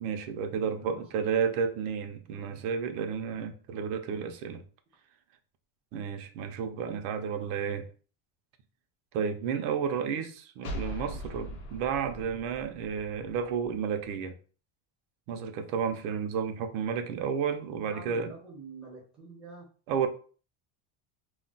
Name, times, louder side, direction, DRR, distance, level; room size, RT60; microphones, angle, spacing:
voice 1, 0.0-4.6 5.9-7.9 9.1-14.4 15.3-18.3 19.9-20.1, right 7 dB, 90° right, 0.7 m, -32 dB
voice 2, 0.6-1.3 2.3-2.7 11.0-11.7 17.8-19.7, right 3 dB, ahead, 0.4 m, -48 dB
sound 1, 10.6-14.1, left 1 dB, 50° left, 0.6 m, -41 dB
2.4 x 2.2 x 3.8 m
cardioid pair, 175°, 44 cm